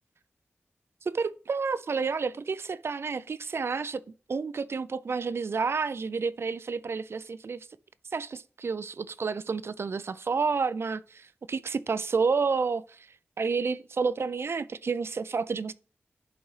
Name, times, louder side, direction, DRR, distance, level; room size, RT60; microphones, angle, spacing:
voice 1, 1.0-4.0 4.3-7.7 8.1-13.1 13.4-15.7, right 5 dB, 65° right, 0.4 m, -30 dB
11.0 x 4.1 x 3.2 m
wide cardioid pair, 70°, 5 cm